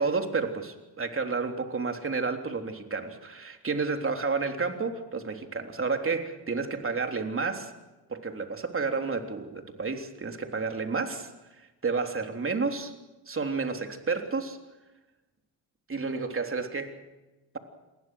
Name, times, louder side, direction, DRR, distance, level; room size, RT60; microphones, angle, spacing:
voice 1, 0.0-7.7 8.1-11.3 11.8-12.9 13.3-14.6 15.9-17.0, right 4 dB, 25° right, 5 dB, 3.5 m, -30 dB
28.0 x 21.0 x 6.4 m, 1.1 s
hypercardioid pair, 60°, 47 cm